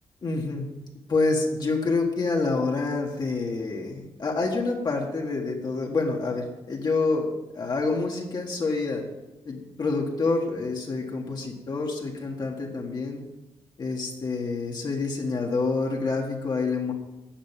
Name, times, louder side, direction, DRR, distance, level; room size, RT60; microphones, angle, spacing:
voice 1, 0.2-0.7 1.1-9.0 9.5-13.2 13.8-16.9, left 3 dB, 45° left, 0 dB, 1.7 m, -27 dB
10.5 x 6.7 x 7.4 m, 1.1 s
wide cardioid pair, 135°, 11 cm